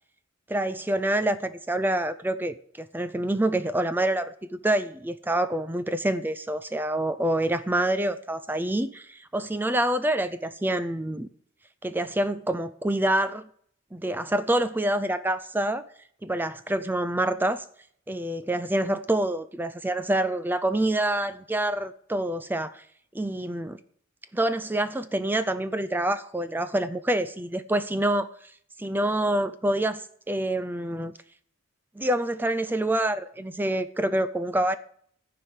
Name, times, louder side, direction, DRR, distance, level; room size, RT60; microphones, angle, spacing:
voice 1, 0.5-11.3 11.8-13.5 13.9-15.8 16.2-17.6 18.1-22.8 23.1-23.8 24.3-28.3 28.8-31.1 32.0-34.8, right 1 dB, 10° right, 0.4 m, -27 dB
14.0 x 4.9 x 9.2 m
head